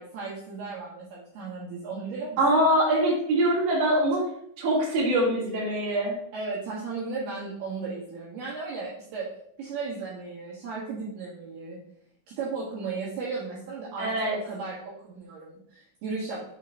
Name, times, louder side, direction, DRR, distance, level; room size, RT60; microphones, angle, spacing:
voice 1, 0.0-2.4 6.3-9.3 9.6-11.8 12.4-16.4, right 4 dB, 70° right, -6 dB, 2.8 m, -35 dB
voice 2, 2.4-4.2 4.6-6.1 14.0-14.3, right 1 dB, 40° right, -5 dB, 2.6 m, -23 dB
7.3 x 3.6 x 4.7 m, 0.69 s
omnidirectional pair, 5.6 m